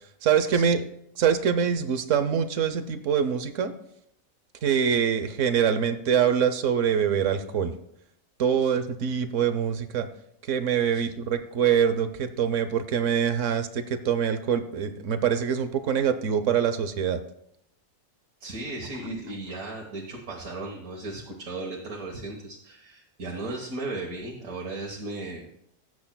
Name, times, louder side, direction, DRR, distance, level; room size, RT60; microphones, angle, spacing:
voice 1, 0.2-0.8 1.2-3.7 4.6-7.7 8.4-10.1 10.5-17.2, right 8 dB, 65° right, 11 dB, 1.0 m, -24 dB
voice 2, 18.4-25.5, right 2 dB, 90° right, -2 dB, 1.8 m, -36 dB
18.0 x 7.9 x 2.2 m, 0.75 s
omnidirectional pair, 1.4 m